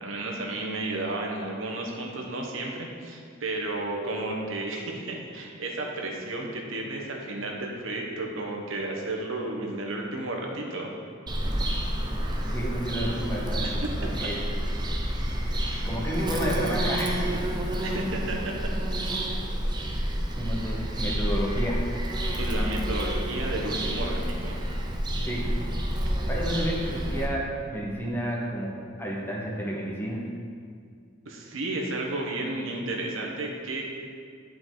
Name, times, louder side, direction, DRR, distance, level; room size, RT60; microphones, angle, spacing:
voice 1, 0.0-10.9 13.6-13.9 17.3-17.4 17.8-18.5 19.1-19.3 22.4-24.6 26.0-26.2 31.2-33.8, right 2 dB, 80° right, 0 dB, 1.1 m, -32 dB
Bird vocalization bird call bird song, 11.3-27.3, equal, 20° right, 0.7 m, -29 dB
voice 2, 12.5-14.4 15.8-17.5 20.4-21.8 25.1-25.6 26.3-28.7 29.0-30.2, equal, 10° left, -3 dB, 1.1 m, -31 dB
10.5 x 4.7 x 3.9 m, 2.1 s
head